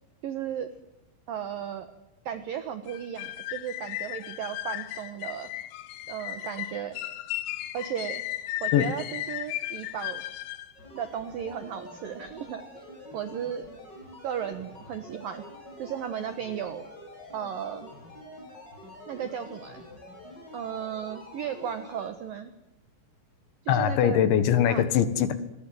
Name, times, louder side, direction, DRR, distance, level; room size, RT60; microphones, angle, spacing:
voice 1, 0.2-0.7 1.3-1.9 2.3-5.5 6.1-7.0 7.7-8.2 8.6-10.2 10.9-12.8 13.1-13.6 14.2-15.5 15.8-16.9 17.3-17.9 19.1-19.9 20.5-22.5 23.7-24.2 24.7-24.9, right 9 dB, 75° right, 10 dB, 2.1 m, -35 dB
sound 1, 2.9-10.7, left 14 dB, 90° left, 4.0 m, -35 dB
sound 2, 10.7-22.1, left 1 dB, 20° left, 8.0 m, -46 dB
voice 2, 23.7-25.4, left 9 dB, 70° left, 12 dB, 3.6 m, -22 dB
27.0 x 23.0 x 7.8 m, 0.89 s
omnidirectional pair, 5.9 m